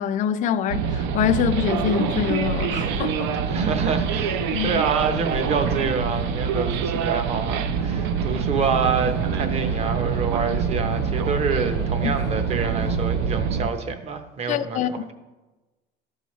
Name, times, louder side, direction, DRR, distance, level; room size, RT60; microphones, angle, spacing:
voice 1, 0.0-3.3 4.5-4.8 12.0-12.1 14.5-14.9, left 9 dB, 40° left, 0.4 m, -24 dB
sound 1, 0.7-13.7, right 7 dB, 70° right, 0.6 m, -25 dB
sound 2, 1.5-13.3, left 8 dB, 80° left, 0.7 m, -40 dB
voice 2, 3.5-15.1, right 5 dB, 35° right, 0.8 m, -27 dB
13.5 x 5.5 x 3.1 m
cardioid pair, 165°, 20 cm